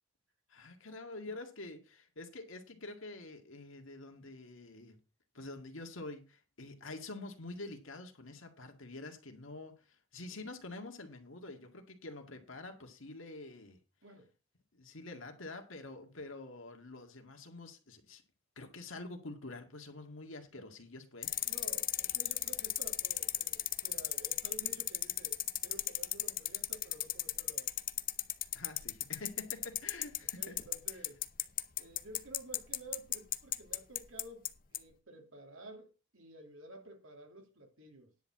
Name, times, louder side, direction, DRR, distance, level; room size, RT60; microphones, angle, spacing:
voice 1, 0.5-5.0 5.3-13.8 14.7-18.2 18.6-21.3 28.5-30.7, left 2 dB, 75° left, 2.1 m, -47 dB
sound 1, 21.2-34.5 34.7-34.8, left 14 dB, 40° left, 0.6 m, -34 dB
voice 2, 21.4-27.7 30.4-31.2 31.8-38.1, right 1 dB, 80° right, 2.8 m, -52 dB
10.5 x 4.6 x 7.5 m
head